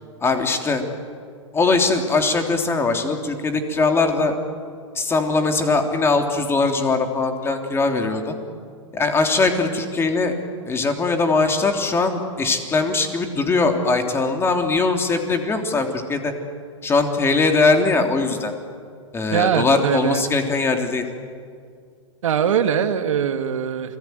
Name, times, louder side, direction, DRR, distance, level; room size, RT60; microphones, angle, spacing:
voice 1, 0.2-0.8 1.5-4.3 4.9-8.3 8.9-10.3 10.7-16.3 16.8-18.5 19.1-21.0, left 3 dB, 15° left, 4 dB, 3.1 m, -21 dB
voice 2, 19.3-20.2 22.2-24.0, right 8 dB, 75° right, 7 dB, 2.3 m, -21 dB
29.5 x 20.0 x 9.4 m, 2.1 s
hypercardioid pair, 130°, 16 cm